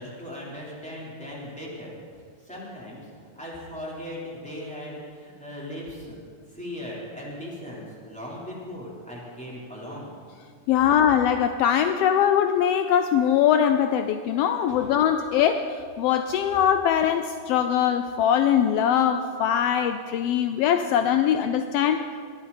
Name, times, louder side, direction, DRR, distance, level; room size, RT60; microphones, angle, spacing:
voice 1, 0.0-1.9 2.4-6.2 6.5-10.1 14.7-14.9, left 1 dB, ahead, -6 dB, 3.7 m, -38 dB
voice 2, 10.7-22.2, left 9 dB, 85° left, 8 dB, 1.4 m, -22 dB
21.0 x 13.0 x 4.2 m, 2.1 s
omnidirectional pair, 3.3 m